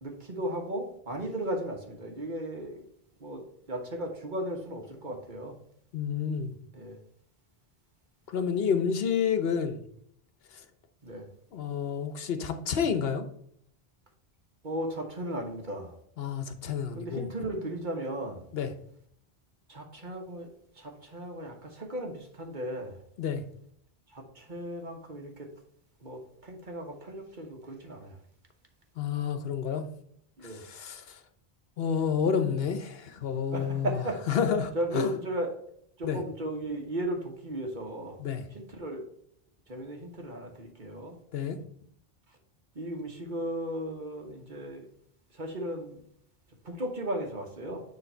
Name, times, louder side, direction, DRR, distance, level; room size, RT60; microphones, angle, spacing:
voice 1, 0.0-2.8 3.2-3.4 3.7-5.5 6.7-7.0 11.0-11.3 14.6-15.9 16.9-18.4 19.7-20.5 20.8-23.0 24.1-25.5 26.0-28.2 30.4-30.6 33.5-34.2 34.7-35.5 36.0-38.2 38.5-39.0 39.7-41.1 42.7-44.9 45.3-46.0 46.6-47.8, right 1 dB, 50° right, 1.4 m, -36 dB
voice 2, 5.9-6.5 8.3-9.8 11.5-13.3 16.2-17.3 18.5-18.7 23.2-23.4 29.0-29.9 30.5-31.2 31.8-34.0 34.3-35.1 36.0-36.2 38.2-38.4 41.3-41.6, left 7 dB, 70° left, 1.0 m, -29 dB
9.7 x 3.2 x 4.4 m
omnidirectional pair, 1.1 m